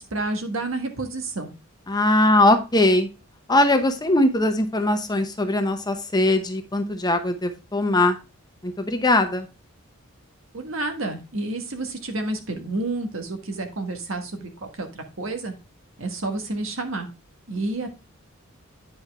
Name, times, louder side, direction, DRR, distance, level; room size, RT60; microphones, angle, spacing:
voice 1, 0.0-1.5 10.5-15.5 16.0-17.1 17.5-17.9, right 2 dB, 70° right, 5 dB, 1.5 m, -30 dB
voice 2, 1.9-3.1 3.5-8.2 8.6-9.5, left 1 dB, 20° left, 7 dB, 0.8 m, -20 dB
9.3 x 5.2 x 3.5 m, 0.28 s
head